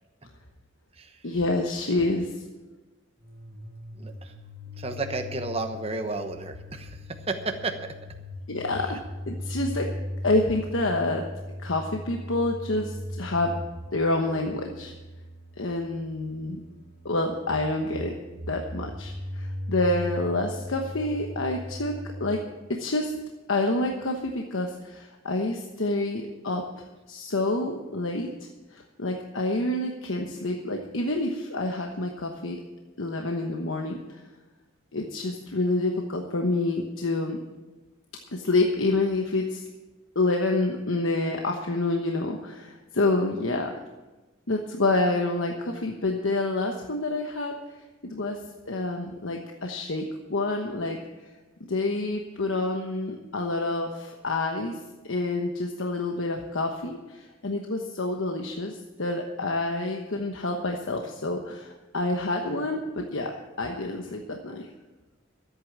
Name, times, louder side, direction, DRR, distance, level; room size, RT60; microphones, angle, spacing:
voice 1, 1.2-2.4 8.5-9.0 9.3-9.9 10.2-11.2 11.6-13.6 13.9-14.9 15.6-16.6 17.0-18.1 18.5-21.9 22.2-22.4 22.8-23.1 23.5-26.6 27.1-28.3 28.7-32.6 33.0-34.2 34.9-37.4 38.3-39.6 40.1-43.7 44.5-47.5 48.0-48.4 48.7-51.0 51.7-54.8 55.1-63.3 63.6-64.7, left 2 dB, 75° left, 2 dB, 1.1 m, -28 dB
sound 1, 3.2-22.4, left 1 dB, 65° right, 2.7 m, -38 dB
voice 2, 4.0-4.3 4.8-7.8, right 3 dB, 30° right, 6 dB, 1.1 m, -32 dB
13.5 x 8.7 x 7.4 m, 1.1 s
head